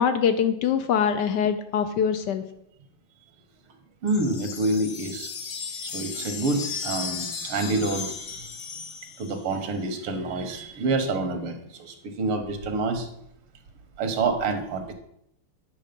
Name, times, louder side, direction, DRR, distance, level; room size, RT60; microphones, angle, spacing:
voice 1, 0.0-2.4, left 7 dB, 75° left, 9 dB, 1.0 m, -23 dB
voice 2, 4.0-5.3 5.6-8.5 9.2-13.1 14.0-14.9, right 3 dB, 80° right, 6 dB, 2.1 m, -28 dB
sound 1, 4.1-9.5, left 5 dB, 55° left, 1.5 m, -35 dB
9.2 x 6.2 x 5.2 m, 0.76 s
omnidirectional pair, 2.4 m